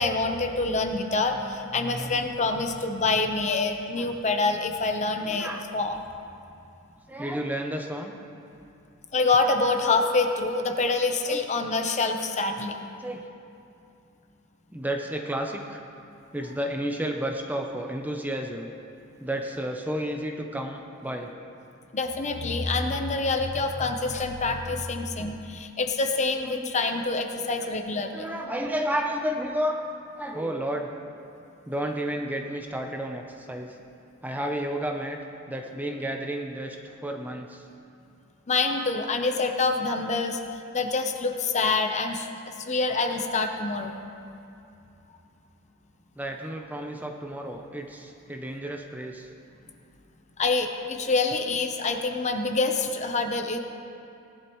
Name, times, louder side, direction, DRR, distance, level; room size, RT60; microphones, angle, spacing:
voice 1, 0.0-6.0 9.1-12.7 21.9-28.2 38.5-40.4 40.7-42.3 42.7-44.0 50.4-53.6, left 3 dB, 35° left, 5 dB, 0.8 m, -26 dB
voice 2, 5.3-5.7 7.1-8.2 11.3-11.4 12.6-12.7 13.0-13.3 14.7-15.8 16.3-18.7 19.2-21.3 26.4-26.7 27.6-27.7 28.1-29.8 30.2-30.9 31.6-33.7 34.2-35.2 35.5-37.6 46.2-49.3, equal, 10° right, 2 dB, 0.6 m, -32 dB
18.0 x 11.0 x 3.1 m, 2.7 s
head